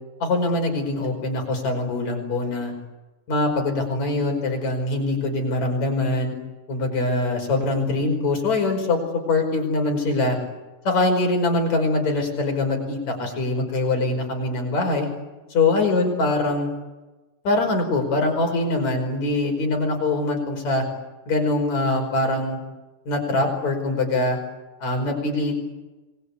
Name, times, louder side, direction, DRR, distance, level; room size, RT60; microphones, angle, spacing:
voice 1, 0.2-2.7 3.3-6.3 6.7-10.4 10.8-15.1 15.5-16.7 17.4-20.9 21.3-22.6 23.1-24.4 24.8-25.6, left 2 dB, 55° left, 3 dB, 6.4 m, -23 dB
29.0 x 21.5 x 8.4 m, 1.1 s
omnidirectional pair, 3.8 m